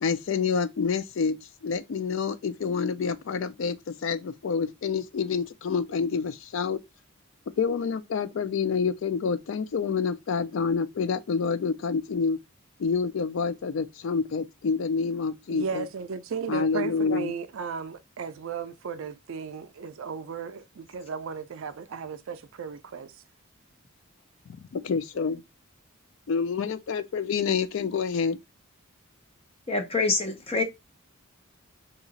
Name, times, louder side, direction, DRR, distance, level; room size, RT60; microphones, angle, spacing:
voice 1, 0.0-6.8 7.6-12.4 12.8-15.9 16.5-17.3 24.7-25.4 26.3-28.4, left 5 dB, 60° left, 0.4 m, -28 dB
voice 2, 15.5-23.1, right 5 dB, 65° right, 0.4 m, -35 dB
voice 3, 29.7-30.6, left 3 dB, 25° left, 0.6 m, -26 dB
2.9 x 2.4 x 3.9 m
head